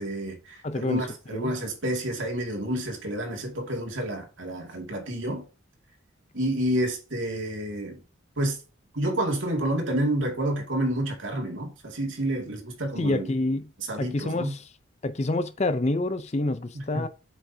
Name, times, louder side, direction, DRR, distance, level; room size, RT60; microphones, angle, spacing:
voice 1, 0.0-5.5 6.3-8.0 8.4-8.6 8.9-13.3 13.9-14.5 16.7-17.1, right 1 dB, 70° right, 2.3 m, -29 dB
voice 2, 0.6-1.0 1.3-1.6 13.0-13.7 14.0-14.7 15.0-17.1, left 2 dB, 35° left, 0.5 m, -27 dB
8.3 x 6.2 x 2.8 m
head